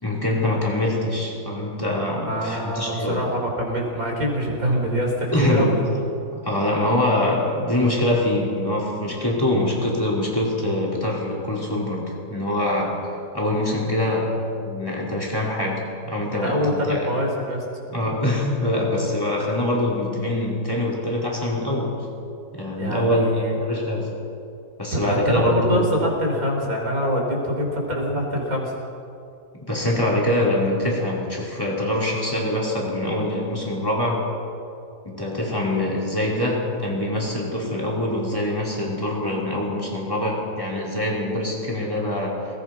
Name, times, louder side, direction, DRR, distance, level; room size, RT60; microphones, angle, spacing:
voice 1, 0.0-3.3 5.3-5.8 6.3-13.0 13.3-17.1 17.9-22.0 22.5-24.1 24.8-25.8 29.5-34.3 35.0-42.4, left 1 dB, 15° left, -4 dB, 5.1 m, -24 dB
voice 2, 2.3-5.8 16.4-17.6 22.8-23.6 24.9-28.7, equal, 60° right, 0 dB, 5.3 m, -24 dB
28.0 x 20.0 x 6.1 m, 2.6 s
omnidirectional pair, 1.7 m